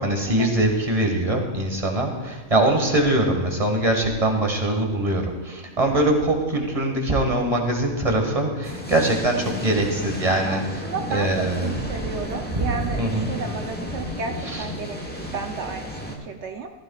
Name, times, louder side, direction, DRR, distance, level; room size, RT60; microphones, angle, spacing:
voice 1, 0.0-11.7 12.0-12.1 12.5-12.7 13.0-13.3 14.4-14.7, right 1 dB, 25° right, 2 dB, 1.6 m, -23 dB
sound 1, 8.6-16.2, equal, 10° left, 1.1 m, -33 dB
voice 2, 10.4-16.7, right 5 dB, 65° right, 5 dB, 0.8 m, -33 dB
15.0 x 14.5 x 2.4 m, 1.3 s
omnidirectional pair, 1.4 m